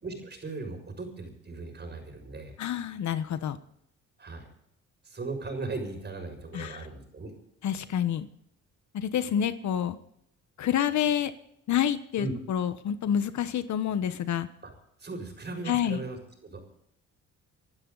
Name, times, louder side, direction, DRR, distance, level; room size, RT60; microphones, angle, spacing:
voice 1, 0.0-2.6 4.2-4.5 5.0-7.3 12.2-12.4 14.6-14.7 15.0-16.7, right 3 dB, 35° right, 4 dB, 6.6 m, -38 dB
voice 2, 2.6-3.6 6.5-6.8 7.6-8.3 8.9-10.0 10.6-11.3 11.7-14.5 15.7-16.0, left 9 dB, 70° left, 12 dB, 1.3 m, -28 dB
27.0 x 12.0 x 4.1 m, 0.74 s
cardioid pair, 90°, 30 cm